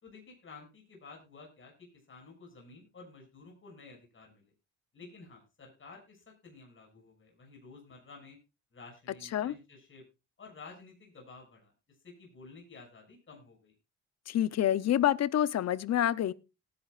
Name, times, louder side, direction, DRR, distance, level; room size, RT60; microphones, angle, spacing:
voice 1, 0.0-4.5 4.9-8.4 8.7-10.0 10.4-11.7 12.0-13.7, left 4 dB, 40° left, 6.6 m, -52 dB
voice 2, 14.3-16.3, left 11 dB, 60° left, 0.8 m, -27 dB
18.5 x 10.5 x 2.5 m
cardioid pair, 90°, 30 cm